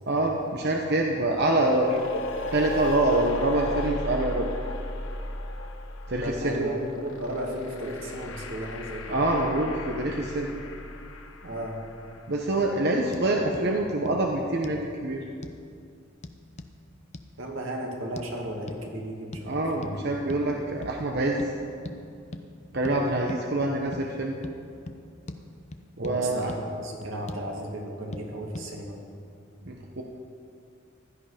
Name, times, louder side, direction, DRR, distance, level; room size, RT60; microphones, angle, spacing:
voice 1, 0.1-2.2 2.5-4.5 6.1-6.7 9.1-10.5 12.3-15.2 19.4-21.4 22.7-24.3 26.0-26.5 29.6-30.0, right 2 dB, 55° right, 0 dB, 1.1 m, -26 dB
sound 1, 1.5-12.6, left 1 dB, 85° left, 1.3 m, -36 dB
voice 2, 6.2-9.2 11.4-11.8 17.4-20.1 26.0-29.0, right 1 dB, 85° right, 0 dB, 2.4 m, -34 dB
sound 2, 13.1-13.3 13.5-13.7 14.1-14.2 14.6-14.8 15.4-15.6 16.2-16.7 17.1-17.3 18.2-18.3 18.7-18.8 19.3-19.5 19.8-20.0 20.3-20.5 20.8-21.0 21.4-21.5 21.8-22.0 22.3-22.5 22.8-23.0 23.3-23.4 23.9-24.1 24.4-24.6 24.9-25.0 25.3-25.4 25.7-26.2 26.5-26.6 27.0-27.5 28.1-28.3 28.5-28.7, left 1 dB, 35° left, 0.7 m, -39 dB
16.0 x 12.5 x 5.1 m, 2.5 s
head